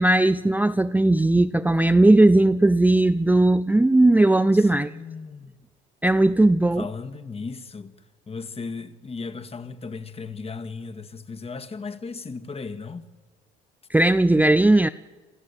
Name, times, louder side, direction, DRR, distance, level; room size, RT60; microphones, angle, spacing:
voice 1, 0.0-4.9 6.0-6.8 13.9-14.9, right 2 dB, 10° right, 0.6 m, -18 dB
voice 2, 4.5-5.6 6.7-7.9 8.3-13.1, left 4 dB, 30° left, 1.8 m, -36 dB
27.5 x 14.0 x 8.4 m
supercardioid pair, 80°, 21 cm